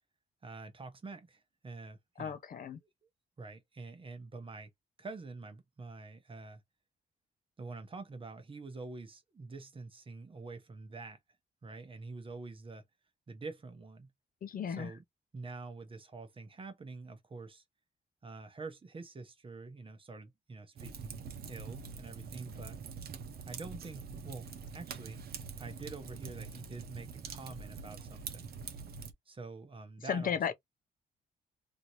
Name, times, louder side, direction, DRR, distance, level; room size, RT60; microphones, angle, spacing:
voice 1, 0.4-2.4 2.7-2.9 3.4-4.7 5.0-6.6 7.6-11.2 11.6-12.8 13.3-14.1 14.7-15.0 15.3-17.6 18.2-22.8 23.5-25.2 25.6-28.6 29.3-30.5, right 3 dB, 30° right, 0.9 m, -46 dB
voice 2, 2.2-2.8 14.4-14.9 30.1-30.5, left 7 dB, 55° left, 0.6 m, -34 dB
Fire, 20.8-29.1, right 5 dB, 65° right, 0.8 m, -45 dB
3.0 x 2.7 x 2.9 m
cardioid pair, 100°, 17 cm